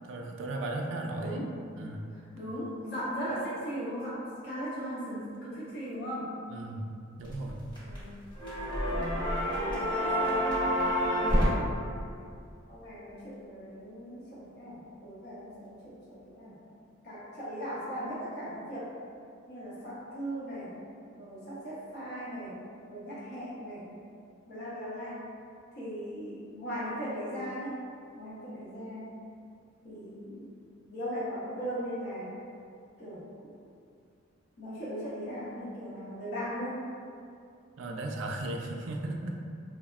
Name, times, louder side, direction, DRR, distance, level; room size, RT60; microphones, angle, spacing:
voice 1, 0.0-2.1 6.5-7.7 37.8-39.4, right 2 dB, 65° right, 1 dB, 0.3 m, -36 dB
voice 2, 1.2-1.5 2.4-6.3 7.8-8.1 8.6-9.1 9.7-10.4 11.2-11.9 12.7-16.6 17.0-18.9 19.5-20.8 21.1-22.6 22.9-23.9 24.5-25.2 25.7-27.8 28.2-29.1 29.8-30.5 30.9-32.3 33.0-33.5 34.6-36.8, equal, 55° left, -9 dB, 0.8 m, -38 dB
sound 1, 7.2-8.0 8.4-11.5, equal, 25° left, 0.8 m, -28 dB
3.3 x 2.0 x 2.3 m, 2.4 s
head